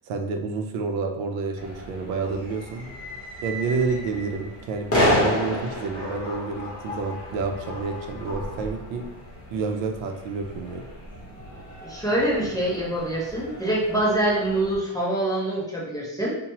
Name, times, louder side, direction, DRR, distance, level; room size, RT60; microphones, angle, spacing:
voice 1, 0.1-2.9 3.4-9.1 9.5-10.8, right 4 dB, 85° right, 4 dB, 0.6 m, -29 dB
sound 1, 1.5-14.8, equal, 30° left, 0.9 m, -31 dB
voice 2, 11.8-16.3, right 1 dB, 10° left, -6 dB, 0.4 m, -25 dB
2.9 x 2.2 x 2.8 m, 0.91 s
cardioid pair, 150°, 44 cm